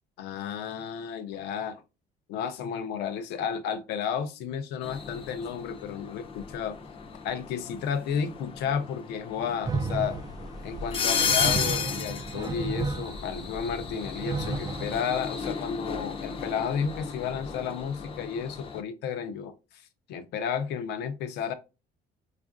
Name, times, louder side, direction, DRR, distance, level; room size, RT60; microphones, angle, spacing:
voice 1, 0.2-1.8 2.3-6.8 7.2-10.2 10.6-21.5, left 7 dB, 85° left, 0.6 m, -32 dB
sound 1, 4.8-18.8, left 6 dB, 35° left, 0.5 m, -34 dB
sound 2, 9.6-15.0, right 3 dB, 20° right, 0.3 m, -33 dB
4.2 x 2.5 x 2.4 m
cardioid pair, 110°, 17 cm